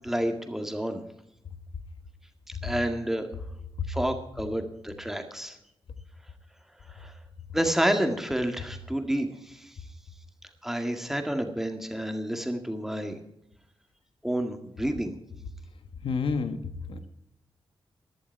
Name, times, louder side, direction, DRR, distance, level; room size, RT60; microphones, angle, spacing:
voice 1, 0.0-1.0 2.6-3.3 3.9-5.6 7.0-7.1 7.5-9.3 10.6-13.1 14.2-15.1, right 1 dB, 5° right, 5 dB, 1.9 m, -29 dB
voice 2, 16.0-17.1, left 4 dB, 85° left, 9 dB, 1.4 m, -30 dB
16.0 x 11.5 x 4.6 m, 0.80 s
wide cardioid pair, 100°, 9 cm